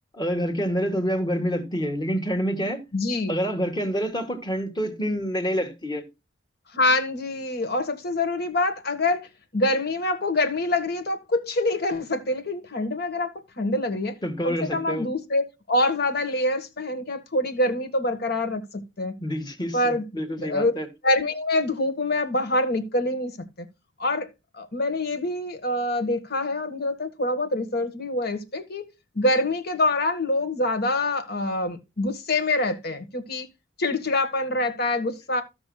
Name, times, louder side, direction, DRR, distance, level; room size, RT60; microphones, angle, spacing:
voice 1, 0.1-2.8 3.3-6.1 14.2-15.1 19.2-20.9, equal, 25° left, 1.7 m, -27 dB
voice 2, 2.9-3.4 6.7-9.3 9.5-14.2 14.4-18.6 19.0-19.1 19.7-20.0 20.4-20.7 21.0-23.4 24.0-24.3 24.6-28.8 29.1-33.5 33.8-35.4, left 2 dB, 55° left, 1.6 m, -25 dB
15.5 x 6.2 x 2.4 m
head